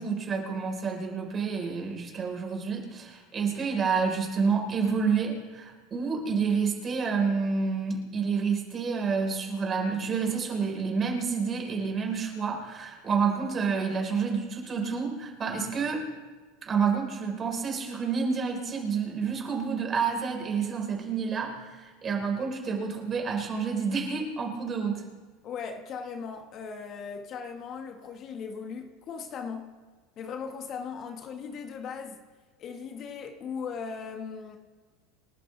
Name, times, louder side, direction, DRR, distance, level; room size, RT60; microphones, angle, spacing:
voice 1, 0.0-16.0 16.6-25.0, right 5 dB, 30° right, 4.6 m, -29 dB
voice 2, 25.4-29.7 30.2-32.2 32.6-34.6, left 6 dB, 45° left, 1.7 m, -38 dB
29.0 x 11.5 x 3.4 m
hypercardioid pair, 95°, 0 cm